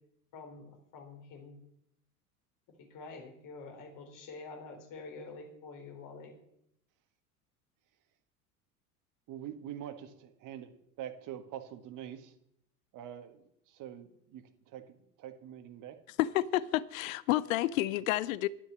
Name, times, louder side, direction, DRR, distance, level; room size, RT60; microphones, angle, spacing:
voice 1, 0.3-1.6 2.8-6.3, left 3 dB, 45° left, 4.3 m, -47 dB
voice 2, 9.3-12.4 12.9-16.0, right 10 dB, 40° right, 1.8 m, -45 dB
voice 3, 16.2-18.5, left 15 dB, 60° left, 0.6 m, -30 dB
11.5 x 9.1 x 7.2 m
figure-of-eight pair, 75°, 46 cm